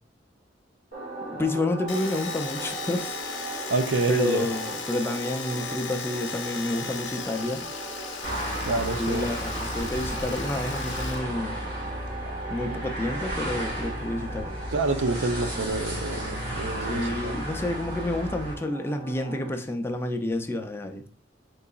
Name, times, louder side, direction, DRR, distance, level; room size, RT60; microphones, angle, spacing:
sound 1, 0.9-19.5, right 2 dB, 45° right, 2.3 m, -39 dB
voice 1, 1.3-3.2 4.1-7.6 9.0-11.6 12.5-14.5 16.9-21.0, left 1 dB, 15° left, 0.4 m, -29 dB
Domestic sounds home sounds, 1.9-11.2 11.5-12.3, left 6 dB, 80° left, 0.8 m, -37 dB
voice 2, 3.7-4.5 8.6-9.3 14.7-17.4, right 3 dB, 85° right, 0.6 m, -27 dB
sound 2, 8.2-18.5, equal, 60° right, 1.9 m, -33 dB
4.7 x 3.8 x 2.3 m
head